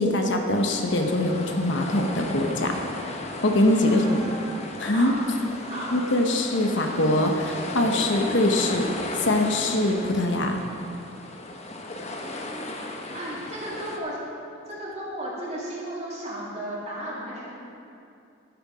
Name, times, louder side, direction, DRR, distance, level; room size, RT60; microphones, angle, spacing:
voice 1, 0.0-2.7 3.0-3.2 3.4-4.2 4.8-5.1 5.9-8.8 9.2-10.6, left 1 dB, 60° left, 3 dB, 1.0 m, -23 dB
sound 1, 0.5-14.0, left 2 dB, 35° left, 0.9 m, -36 dB
voice 2, 3.8-5.1 5.6-5.9 12.0-12.7 13.1-14.2 14.6-17.6, right 1 dB, 35° right, -6 dB, 2.9 m, -35 dB
12.0 x 9.7 x 5.0 m, 2.6 s
head